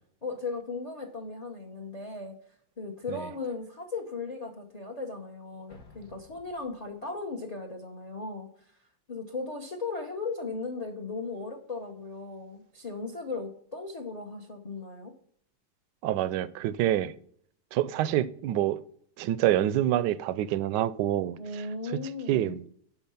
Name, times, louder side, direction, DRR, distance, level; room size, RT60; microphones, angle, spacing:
voice 1, 0.2-2.4 2.8-8.7 9.1-15.1 21.4-22.6, left 3 dB, 30° left, 0.7 m, -37 dB
Explosion, 5.7-7.4, left 2 dB, 70° left, 2.8 m, -55 dB
voice 2, 16.0-17.1 17.7-18.8 19.2-21.4 22.3-22.6, right 12 dB, 75° right, 1.1 m, -26 dB
11.0 x 4.4 x 5.6 m
omnidirectional pair, 2.1 m